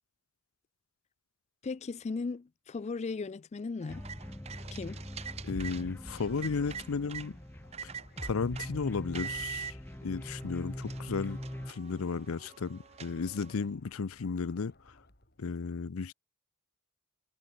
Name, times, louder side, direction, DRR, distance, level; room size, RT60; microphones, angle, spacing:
voice 1, 1.6-4.1 4.7-5.0, left 4 dB, 30° left, 0.4 m, -37 dB
sound 1, 3.8-7.3 7.7-8.7 9.1-9.7 10.4-10.5 10.8-13.6, right 7 dB, 30° right, 0.4 m, -44 dB
sound 2, 3.9-11.7, left 1 dB, 10° left, 0.8 m, -42 dB
voice 2, 5.4-7.3 7.8-7.9 8.2-9.8 10.0-11.4 11.7-14.7 15.4-16.1, left 5 dB, 85° left, 0.6 m, -34 dB
sound 3, 7.3-15.5, left 2 dB, 50° left, 6.5 m, -61 dB
head